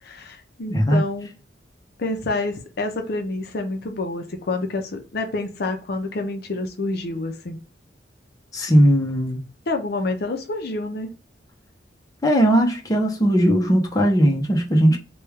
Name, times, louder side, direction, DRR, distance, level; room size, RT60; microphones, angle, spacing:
voice 1, 0.0-1.3 2.0-7.6 9.7-11.1, left 2 dB, 60° left, 0.6 m, -28 dB
voice 2, 0.7-1.0 8.5-9.4 12.2-15.0, equal, 20° left, 0.7 m, -18 dB
3.1 x 2.3 x 3.4 m
head